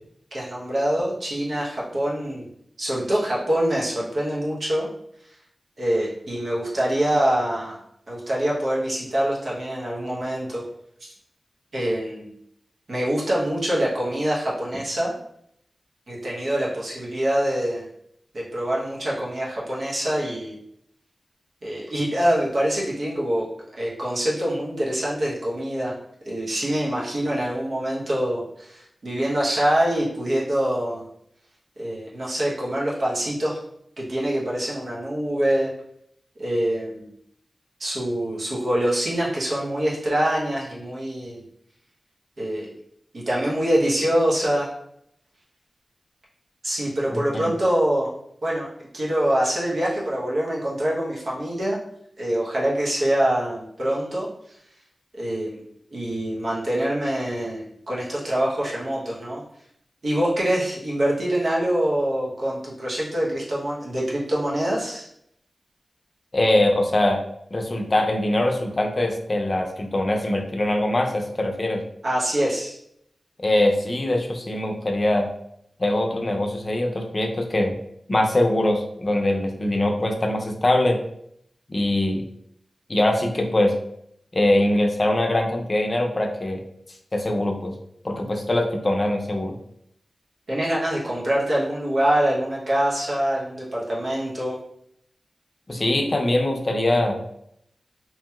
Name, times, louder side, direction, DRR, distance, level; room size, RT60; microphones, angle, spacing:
voice 1, 0.3-2.5 2.8-4.9 5.8-7.8 8.1-10.6 11.0-11.1 11.7-12.3 12.9-15.1 16.1-17.9 18.3-20.6 21.6-23.5 23.8-25.9 26.2-31.1 31.8-33.6 34.0-35.7 36.4-37.1 37.8-41.4 42.4-42.7 43.1-44.7 46.6-48.1 48.4-48.7 48.9-51.8 52.2-54.3 55.1-55.6 55.9-59.4 60.0-65.1 72.0-72.8 90.5-94.6, right 1 dB, 70° right, -5 dB, 1.0 m, -25 dB
voice 2, 47.1-47.5 66.3-67.2 67.5-71.8 73.4-75.3 75.8-77.8 78.1-81.0 81.7-82.3 82.9-83.7 84.3-86.6 87.1-87.7 88.0-89.5 95.7-97.2, left 1 dB, 45° left, 3 dB, 0.5 m, -22 dB
3.0 x 2.7 x 2.3 m, 0.73 s
cardioid pair, 45°, 0 cm